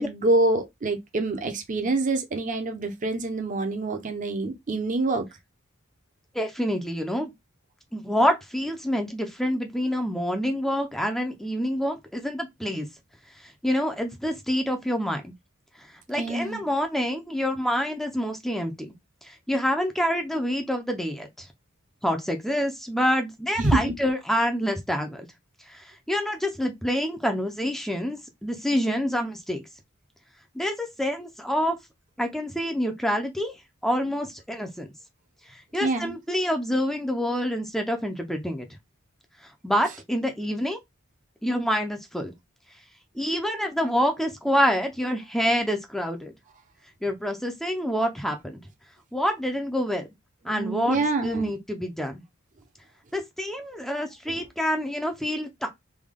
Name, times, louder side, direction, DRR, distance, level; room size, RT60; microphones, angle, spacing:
voice 1, 0.0-5.3 16.1-16.6 23.6-23.8 35.8-36.1 50.5-51.5 54.3-54.4, right 2 dB, 40° right, 0.6 m, -26 dB
voice 2, 6.3-7.3 7.9-12.9 13.4-15.3 16.1-18.9 19.2-21.5 22.0-25.3 25.7-29.6 30.5-31.8 32.2-33.6 33.8-34.9 35.5-38.7 39.6-40.8 41.4-42.3 43.2-46.3 47.0-48.6 49.1-50.1 50.4-52.2 53.1-55.7, equal, ahead, 0.5 m, -27 dB
3.4 x 2.2 x 3.5 m
head